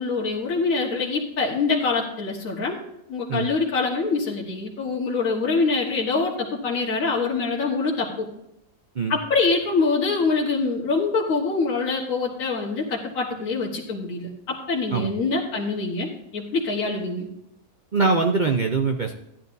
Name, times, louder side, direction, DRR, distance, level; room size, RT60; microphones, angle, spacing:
voice 1, 0.0-2.8 3.1-8.3 9.1-17.3, left 4 dB, 60° left, -3 dB, 1.8 m, -25 dB
voice 2, 17.9-19.2, right 4 dB, 50° right, 4 dB, 0.5 m, -22 dB
14.5 x 10.5 x 2.6 m, 0.82 s
omnidirectional pair, 1.7 m